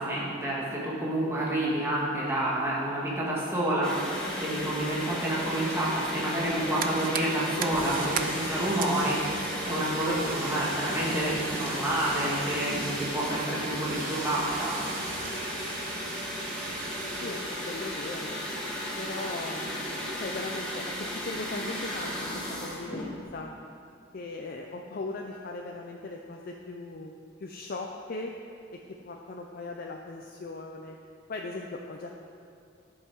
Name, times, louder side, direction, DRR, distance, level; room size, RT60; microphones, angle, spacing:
voice 1, 0.0-3.9 4.4-14.8, right 1 dB, 15° right, -6 dB, 1.6 m, -29 dB
sound 1, 3.8-23.2, equal, 5° left, 1.5 m, -35 dB
Fire, 6.4-18.0, right 7 dB, 45° right, 0.4 m, -40 dB
sound 2, 7.7-15.4, right 1 dB, 75° right, 2.1 m, -41 dB
voice 2, 17.1-23.5 24.1-27.1 27.4-28.3 28.7-31.0 31.3-32.1, left 3 dB, 50° left, 1 dB, 0.5 m, -39 dB
11.0 x 5.6 x 4.7 m, 2.4 s
head